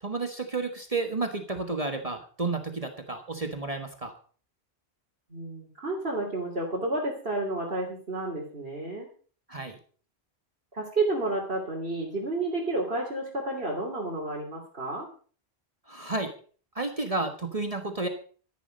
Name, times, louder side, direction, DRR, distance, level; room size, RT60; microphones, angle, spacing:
voice 1, 0.0-4.1 9.5-9.7 15.9-16.3 16.7-18.1, right 3 dB, 35° right, 5 dB, 1.5 m, -31 dB
voice 2, 5.3-9.1 10.7-15.1, right 2 dB, 60° right, -3 dB, 3.3 m, -31 dB
13.0 x 11.0 x 5.3 m, 0.43 s
omnidirectional pair, 1.1 m